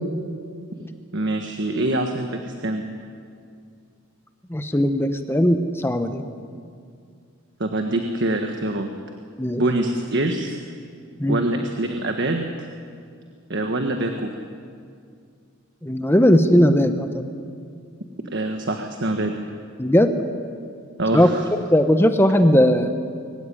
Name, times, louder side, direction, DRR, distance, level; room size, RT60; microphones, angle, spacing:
voice 1, 1.1-2.8 7.6-8.9 9.6-10.6 11.3-12.5 13.5-14.3 18.3-19.3 21.0-21.5, right 1 dB, 55° right, 4 dB, 1.4 m, -24 dB
voice 2, 4.5-6.3 9.4-9.6 11.2-11.4 15.8-17.2 19.8-20.1 21.1-21.3 21.7-22.9, equal, 10° left, 8 dB, 1.0 m, -18 dB
22.5 x 16.0 x 9.9 m, 2.3 s
head